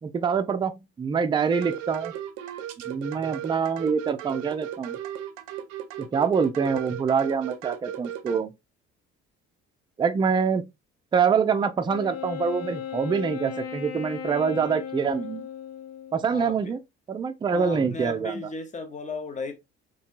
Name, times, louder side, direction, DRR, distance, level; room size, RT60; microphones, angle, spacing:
voice 1, 0.0-2.1 2.9-5.0 6.0-8.5 10.0-10.6 11.1-15.5 16.1-16.8 17.1-18.5, right 6 dB, 15° right, 0.3 m, -25 dB
sound 1, 1.5-8.4, right 11 dB, 75° right, 0.5 m, -36 dB
Wind instrument woodwind instrument, 11.8-16.4, left 8 dB, 85° left, 0.5 m, -36 dB
voice 2, 16.3-16.7 17.5-19.5, left 3 dB, 25° left, 0.7 m, -35 dB
2.7 x 2.2 x 2.4 m
hypercardioid pair, 60°, 31 cm